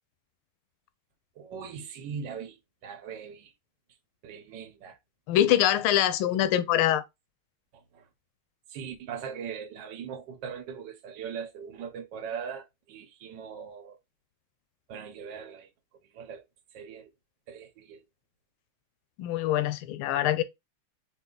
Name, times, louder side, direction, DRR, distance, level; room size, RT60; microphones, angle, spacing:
voice 1, 1.3-3.5 4.2-5.0 7.7-8.1 8.7-14.0 14.9-15.7 16.1-16.4 16.7-17.1 17.5-18.0, right 7 dB, 65° right, 1.4 m, -40 dB
voice 2, 5.3-7.0 19.2-20.4, left 12 dB, 90° left, 1.4 m, -24 dB
4.9 x 2.7 x 3.8 m
omnidirectional pair, 2.3 m